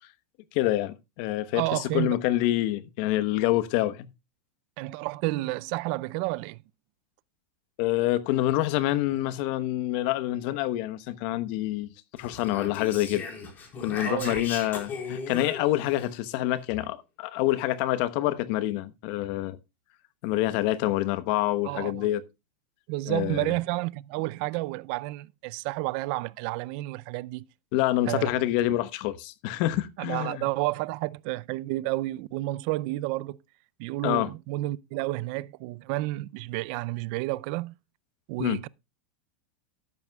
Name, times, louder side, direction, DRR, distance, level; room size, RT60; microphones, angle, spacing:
voice 1, 0.5-4.1 7.8-11.9 12.2-13.2 13.8-19.6 20.2-22.2 23.1-23.5 27.7-30.4 34.0-34.3 38.4-38.6, left 15 dB, 55° left, 1.0 m, -27 dB
voice 2, 1.5-2.2 4.8-6.6 13.9-14.4 21.7-22.1 22.9-27.5 28.1-28.3 30.0-33.4 33.8-37.8 38.3-38.7, right 20 dB, 50° right, 0.5 m, -31 dB
Speech, 12.2-16.1, left 5 dB, 30° left, 4.2 m, -37 dB
13.0 x 11.0 x 2.3 m
supercardioid pair, 140°, 6 cm